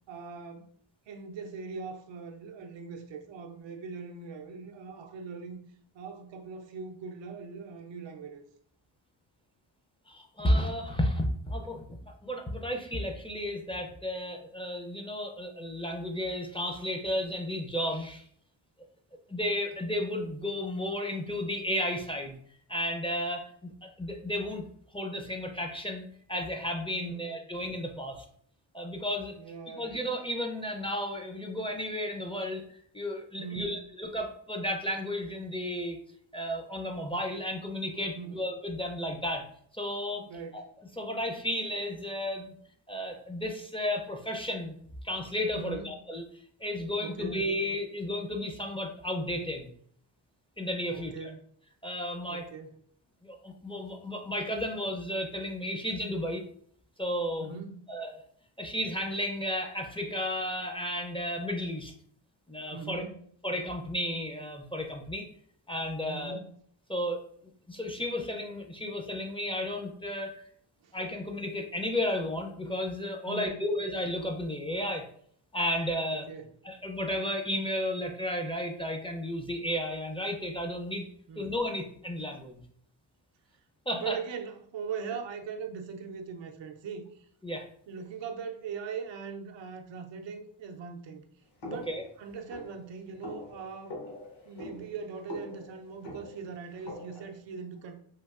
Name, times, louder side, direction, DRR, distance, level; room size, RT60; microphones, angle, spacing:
voice 1, 0.1-0.7 1.1-5.6 5.9-8.4 26.9-27.4 29.4-30.0 33.4-33.9 38.2-38.5 40.3-40.7 45.5-45.9 47.0-47.4 50.9-51.5 52.3-52.8 57.4-57.9 62.7-63.3 66.1-66.5 70.8-70.9 73.3-73.6 76.1-76.5 81.3-81.5 83.9-87.3 87.9-91.2 91.6-93.9 94.4-98.0, right 5 dB, 75° right, 0.5 m, -41 dB
voice 2, 10.1-11.8 12.2-18.3 19.3-22.4 22.7-24.6 24.9-28.2 28.7-29.4 29.7-36.0 36.3-39.4 39.7-40.3 41.0-42.5 42.9-44.8 45.0-46.2 46.6-49.7 50.6-51.3 51.8-52.4 53.2-56.4 57.0-57.5 57.9-58.2 58.6-61.9 62.5-63.0 63.4-65.3 65.7-66.4 66.9-67.2 67.7-70.4 70.9-75.1 75.5-76.3 76.6-81.1 81.4-82.6 83.9-84.2 87.4-87.7 91.9-92.0, left 1 dB, 10° left, 0.5 m, -33 dB
sound 1, 91.6-97.4, left 2 dB, 60° left, 1.0 m, -44 dB
3.2 x 2.5 x 2.4 m
cardioid pair, 55°, 45 cm